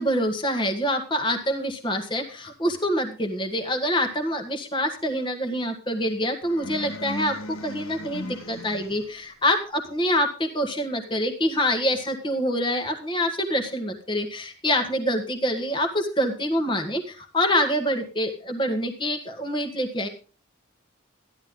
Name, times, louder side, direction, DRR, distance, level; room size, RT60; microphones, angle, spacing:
voice 1, 0.0-7.4 7.6-20.1, equal, 25° left, 4 dB, 1.6 m, -26 dB
sound 1, 6.4-9.3, left 1 dB, 90° left, 1.3 m, -37 dB
14.5 x 11.0 x 3.8 m, 0.35 s
head